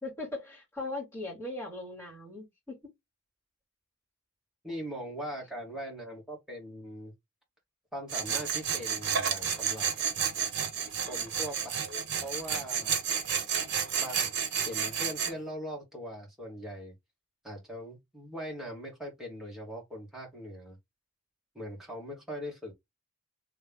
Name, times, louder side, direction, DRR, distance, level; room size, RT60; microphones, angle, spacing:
voice 1, 0.0-2.8, left 2 dB, 15° left, 2.6 m, -39 dB
voice 2, 4.6-7.1 7.9-9.9 11.1-12.9 14.0-14.3 14.6-16.9 17.4-20.8 21.5-22.7, equal, ahead, 1.8 m, -41 dB
Tools, 8.1-15.3, right 7 dB, 60° right, 0.9 m, -31 dB
3.3 x 3.2 x 3.6 m
head